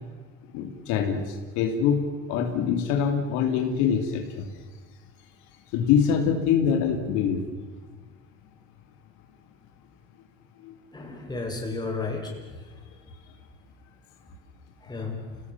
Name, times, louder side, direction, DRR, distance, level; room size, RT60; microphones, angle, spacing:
voice 1, 0.5-4.5 5.7-7.4 10.6-10.8, left 7 dB, 75° left, 4 dB, 2.9 m, -24 dB
voice 2, 10.9-12.8 14.8-15.4, left 3 dB, 15° left, 0 dB, 6.3 m, -33 dB
28.0 x 18.0 x 7.4 m, 1.4 s
supercardioid pair, 110°, 30 cm